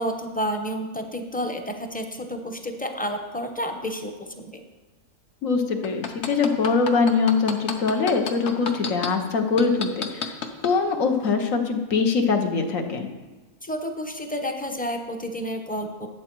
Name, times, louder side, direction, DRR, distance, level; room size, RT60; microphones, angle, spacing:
voice 1, 0.0-4.6 13.6-16.1, equal, 10° left, 4 dB, 0.6 m, -30 dB
voice 2, 5.4-10.3 10.6-13.1, left 4 dB, 75° left, 5 dB, 1.4 m, -23 dB
sound 1, 5.8-9.1 9.6-10.7 11.2-11.3, left 6 dB, 60° left, 1.1 m, -29 dB
11.5 x 8.0 x 4.6 m, 1.2 s
omnidirectional pair, 1.4 m